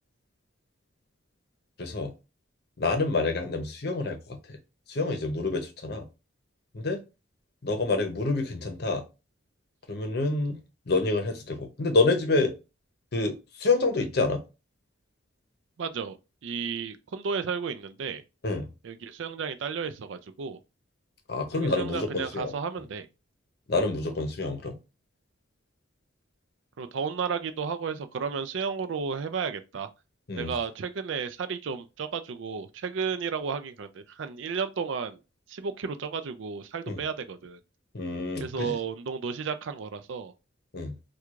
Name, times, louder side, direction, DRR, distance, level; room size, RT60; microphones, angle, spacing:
voice 1, 1.8-2.1 2.8-4.6 4.9-6.0 6.7-7.0 7.6-9.0 9.9-10.6 10.9-12.5 13.1-14.4 18.4-18.7 21.3-22.5 23.7-24.8 30.3-30.5 36.9-37.0 37.9-38.7 40.7-41.0, left 3 dB, 55° left, 0.7 m, -27 dB
voice 2, 15.8-16.2 16.4-18.2 18.8-20.6 21.5-23.1 26.8-29.9 30.4-35.2 35.5-37.6 38.4-40.3, right 6 dB, 70° right, 0.4 m, -33 dB
4.5 x 2.3 x 2.4 m
head